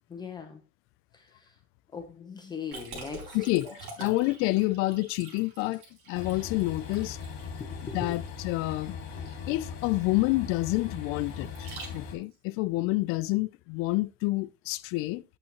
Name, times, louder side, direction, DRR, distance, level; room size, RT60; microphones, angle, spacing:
voice 1, 0.1-0.6 1.1-1.5 1.9-3.4 3.6-3.7 4.0-4.2 7.6-8.1, left 5 dB, 20° left, 0.9 m, -40 dB
Liquid, 2.7-12.3, right 3 dB, 65° right, 4.6 m, -47 dB
voice 2, 3.3-5.8 6.1-7.2 7.9-8.9 9.5-15.2, left 20 dB, 85° left, 0.5 m, -28 dB
Train, 6.1-12.2, left 6 dB, 60° left, 2.4 m, -39 dB
8.7 x 7.6 x 3.0 m
cardioid pair, 165°, 21 cm